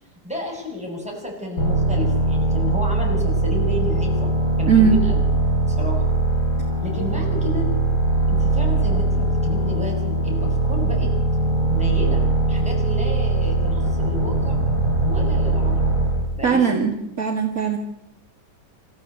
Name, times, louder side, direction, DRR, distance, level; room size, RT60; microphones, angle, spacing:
voice 1, 0.2-4.3 4.6-5.2 5.8-6.1 6.8-7.7 8.3-11.1 11.7-12.2 12.5-14.6 15.0-15.9 16.3-16.9, left 1 dB, 5° right, -1 dB, 7.8 m, -31 dB
sound 1, 1.6-16.3, right 2 dB, 65° left, 8.1 m, -21 dB
voice 2, 16.4-17.8, right 6 dB, 55° right, 2 dB, 2.4 m, -19 dB
25.5 x 14.5 x 8.5 m, 0.87 s
omnidirectional pair, 1.9 m